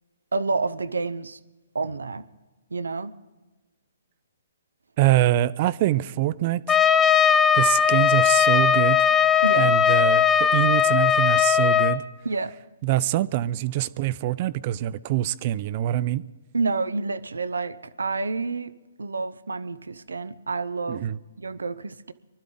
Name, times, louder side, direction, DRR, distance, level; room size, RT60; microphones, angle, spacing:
voice 1, 0.3-1.4 1.7-2.2 2.7-3.1 9.4-9.8 12.2-12.5 16.5-18.7 19.0-21.1 21.4-22.1, right 3 dB, 90° right, 0.7 m, -29 dB
voice 2, 5.0-6.8 7.5-9.0 9.6-12.0 12.8-16.2 20.9-21.2, right 14 dB, 40° right, 0.5 m, -24 dB
Trumpet, 6.7-12.0, left 8 dB, 10° left, 0.6 m, -19 dB
24.0 x 12.0 x 3.9 m
hypercardioid pair, 140°, 0 cm